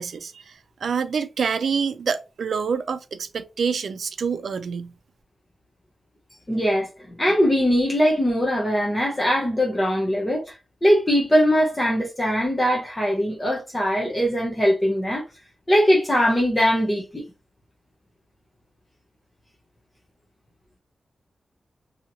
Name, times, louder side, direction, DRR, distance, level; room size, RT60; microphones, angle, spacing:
voice 1, 0.0-4.9, right 6 dB, 70° right, 0.4 m, -27 dB
voice 2, 6.5-10.5 10.8-15.2 15.7-17.2, equal, 15° left, 0.6 m, -21 dB
2.9 x 2.7 x 2.6 m
wide cardioid pair, 180°, 0 cm